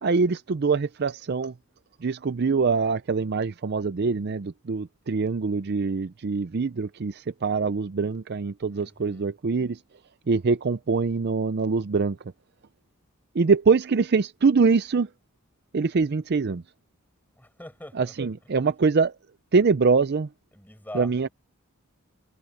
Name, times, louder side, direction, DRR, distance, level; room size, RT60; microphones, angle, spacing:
voice 1, 0.0-1.5 2.0-9.8 10.3-12.3 13.3-15.1 15.7-16.6 18.0-19.1 19.5-20.3 20.9-21.3, right 4 dB, 50° right, 0.5 m, -24 dB
voice 2, 8.7-9.3 17.3-18.1 20.5-21.3, left 1 dB, 10° left, 6.4 m, -43 dB
head